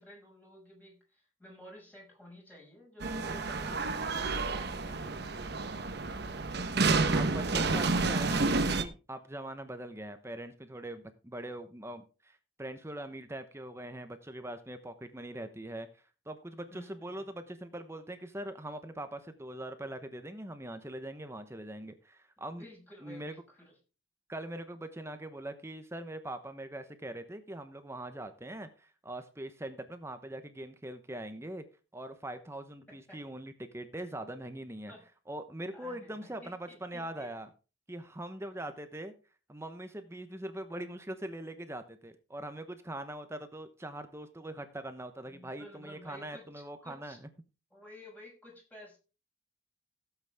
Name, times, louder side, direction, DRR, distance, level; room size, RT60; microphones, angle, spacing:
voice 1, 0.0-5.6 16.7-17.4 22.6-23.6 32.9-33.2 34.9-35.0 35.7-37.3 45.2-47.2 47.7-49.0, equal, 10° left, -2 dB, 5.7 m, -53 dB
sound 1, 3.0-8.8, right 3 dB, 55° right, 1.1 m, -30 dB
voice 2, 7.1-22.6 23.0-23.3 24.3-31.6 31.9-34.9 35.3-37.5 37.9-39.1 39.5-47.3, right 1 dB, 15° right, 9 dB, 0.9 m, -42 dB
16.0 x 8.2 x 3.5 m, 0.33 s
head